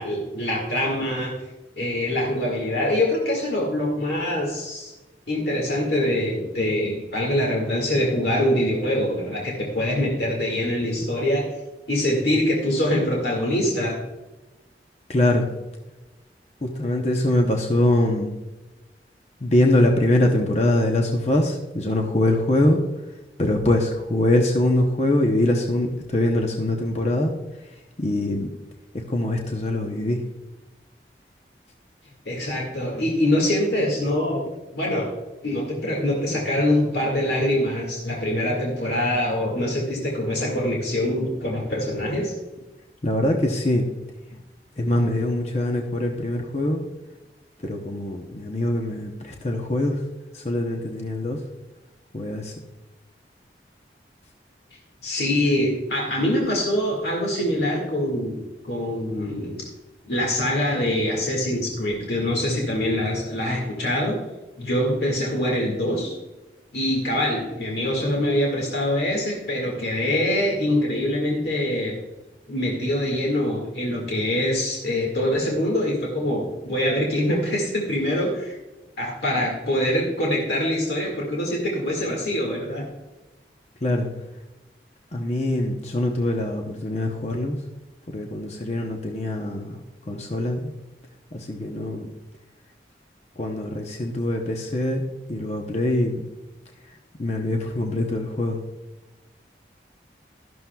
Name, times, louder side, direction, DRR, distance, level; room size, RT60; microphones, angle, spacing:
voice 1, 0.0-1.3 1.8-4.9 5.3-11.5 11.9-14.0 32.3-34.4 34.7-35.1 35.4-42.3 55.0-58.4 58.6-59.7 60.0-64.2 64.6-66.2 66.7-71.9 72.5-78.6 79.0-82.8, left 1 dB, 65° left, -1 dB, 1.9 m, -24 dB
voice 2, 15.1-15.5 16.6-18.3 19.4-22.8 23.4-27.3 28.0-28.5 28.9-30.2 43.0-43.9 44.8-46.8 47.6-50.0 50.3-51.4 52.1-52.5 83.8-84.1 85.1-87.6 88.1-89.8 90.1-90.7 91.3-92.1 93.4-96.2 97.2-98.6, left 1 dB, 40° left, 2 dB, 0.8 m, -23 dB
12.5 x 11.5 x 2.3 m, 1.1 s
head